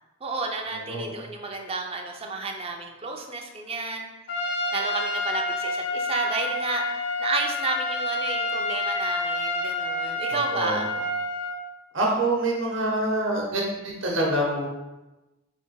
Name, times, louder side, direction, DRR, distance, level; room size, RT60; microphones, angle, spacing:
voice 1, 0.2-4.1 4.7-6.8 7.2-10.9, right 3 dB, 30° right, 2 dB, 0.4 m, -31 dB
voice 2, 0.8-1.1 10.3-10.8 11.9-14.7, right 1 dB, 65° right, -2 dB, 0.9 m, -26 dB
Trumpet, 4.3-11.6, left 2 dB, 55° left, 0.5 m, -28 dB
3.3 x 2.9 x 4.6 m, 1.1 s
head